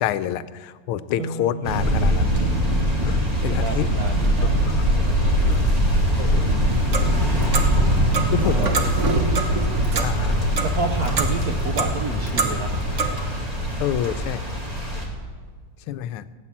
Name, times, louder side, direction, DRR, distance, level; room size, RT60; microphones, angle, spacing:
voice 1, 0.0-2.3 3.0-3.8 4.6-4.8 5.5-5.6 6.2-6.5 8.3-8.7 10.0-10.3 13.8-14.4 15.9-16.2, left 11 dB, 85° left, 14 dB, 1.5 m, -27 dB
voice 2, 1.2-1.7 3.4-4.7 5.0-5.4 6.0-6.5 8.4-12.9, right 4 dB, 65° right, 6 dB, 0.9 m, -32 dB
sound 1, 1.6-15.1, equal, 20° right, 2.4 m, -23 dB
sound 2, 3.5-14.2, right 1 dB, 20° left, 2.8 m, -26 dB
Clock, 6.7-13.2, right 3 dB, 45° right, 1.1 m, -27 dB
15.5 x 9.1 x 7.3 m, 1.6 s
omnidirectional pair, 2.4 m